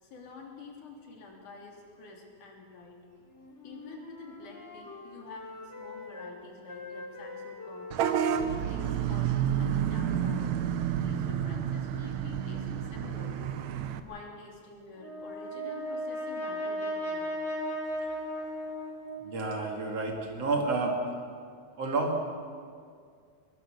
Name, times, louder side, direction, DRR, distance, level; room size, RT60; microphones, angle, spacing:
voice 1, 0.0-3.0 3.6-8.1 8.4-10.6 10.9-13.6 14.0-17.3, left 3 dB, 80° left, 0 dB, 4.7 m, -48 dB
Wind instrument woodwind instrument, 3.3-6.3 6.7-10.4, left 3 dB, 25° left, 2.5 m, -45 dB
Vehicle horn car horn honking / Bus, 7.9-14.0, right 9 dB, 70° right, 2.2 m, -30 dB
Brass instrument, 15.0-19.4, equal, 45° left, 5.2 m, -35 dB
voice 2, 19.2-21.0 21.8-22.2, right 3 dB, 55° right, 1 dB, 3.4 m, -30 dB
24.0 x 20.5 x 6.5 m, 2.2 s
omnidirectional pair, 3.5 m